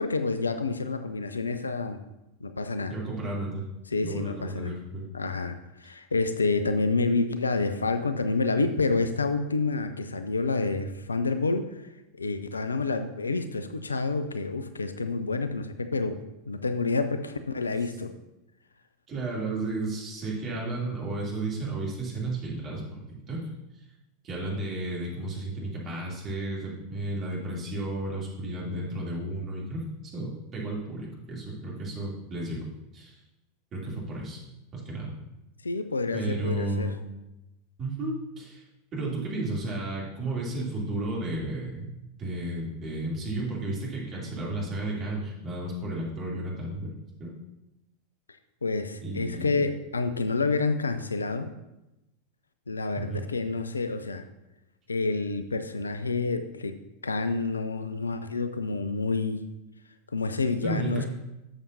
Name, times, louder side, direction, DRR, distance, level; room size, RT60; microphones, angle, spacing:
voice 1, 0.0-2.0 2.4-2.9 3.9-4.7 5.1-11.8 12.2-18.1 35.6-36.9 48.6-51.5 52.7-54.3 54.9-56.8 57.0-59.4 60.1-61.0, left 3 dB, 80° left, 10 dB, 0.5 m, -28 dB
voice 2, 2.9-3.7 4.0-5.1 19.1-23.4 24.2-32.6 32.9-33.1 33.7-34.4 34.7-35.1 36.1-37.0 37.8-38.6 38.9-41.9 42.2-46.9 47.2-47.3 49.0-49.6 52.9-53.2 60.6-61.1, right 2 dB, 30° right, -4 dB, 2.9 m, -33 dB
11.0 x 7.2 x 2.7 m, 0.93 s
figure-of-eight pair, 90°, 0 cm